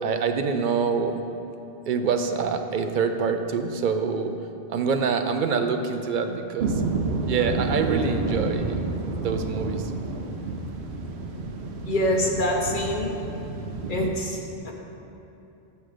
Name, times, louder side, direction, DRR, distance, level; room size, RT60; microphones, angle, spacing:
voice 1, 0.0-1.1 1.9-4.3 4.7-6.7 7.3-8.8 9.2-9.8, right 5 dB, 55° right, 6 dB, 0.6 m, -25 dB
sound 1, 6.6-14.1, right 3 dB, 80° right, 1.0 m, -29 dB
voice 2, 11.9-13.1 13.9-14.7, left 1 dB, 50° left, 0 dB, 1.1 m, -25 dB
6.2 x 5.7 x 6.7 m, 2.9 s
omnidirectional pair, 1.1 m